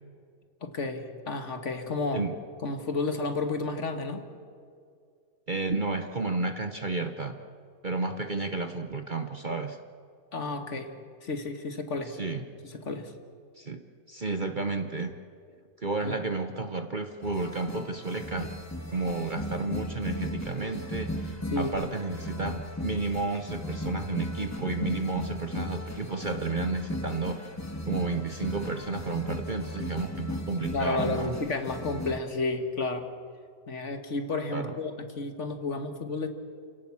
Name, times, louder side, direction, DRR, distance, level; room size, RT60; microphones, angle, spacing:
voice 1, 0.6-2.3 2.6-4.3 10.3-10.9 11.2-12.2 12.6-13.1 16.0-16.2 21.5-21.7 30.7-33.1 33.7-36.3, left 3 dB, 50° left, 6 dB, 1.9 m, -31 dB
voice 2, 5.5-7.3 7.8-9.8 12.2-12.4 13.6-13.8 14.1-15.2 15.8-18.5 18.9-27.5 27.8-31.3 34.5-34.8, right 3 dB, 40° right, 7 dB, 1.0 m, -32 dB
sound 1, 17.2-32.2, left 1 dB, 10° left, 1.3 m, -36 dB
29.5 x 17.5 x 7.3 m, 2.3 s
omnidirectional pair, 1.6 m